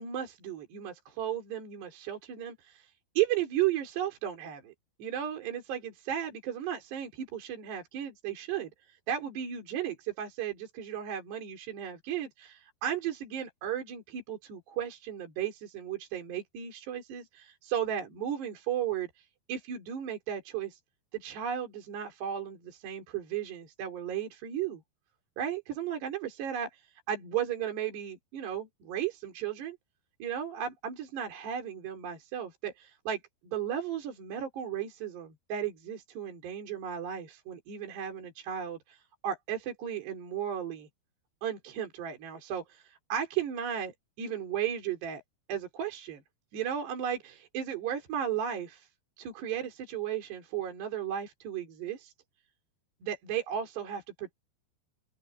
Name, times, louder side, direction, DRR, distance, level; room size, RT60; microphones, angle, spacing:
voice 1, 0.0-4.7 5.0-20.8 21.1-24.8 25.4-26.8 27.1-29.8 30.2-40.9 41.4-43.9 44.2-45.2 45.5-46.2 46.5-48.9 49.2-52.1 53.0-54.3, right 9 dB, 65° right, 6.0 m, -35 dB
open air
omnidirectional pair, 5.2 m